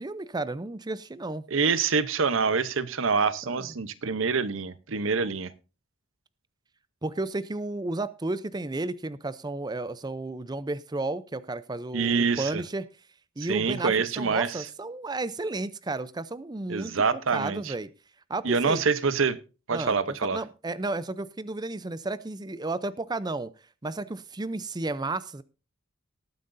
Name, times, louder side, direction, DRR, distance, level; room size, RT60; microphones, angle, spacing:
voice 1, 0.0-1.4 3.5-3.7 7.0-12.8 13.4-17.9 18.3-18.8 19.7-20.0 20.2-23.5 23.8-25.4, right 2 dB, 20° right, 16 dB, 0.5 m, -33 dB
voice 2, 1.5-5.5 11.9-12.6 13.4-14.7 16.7-17.7 18.4-19.4 19.7-20.4, right 5 dB, 70° right, 15 dB, 0.8 m, -26 dB
19.0 x 9.3 x 2.6 m, 0.31 s
head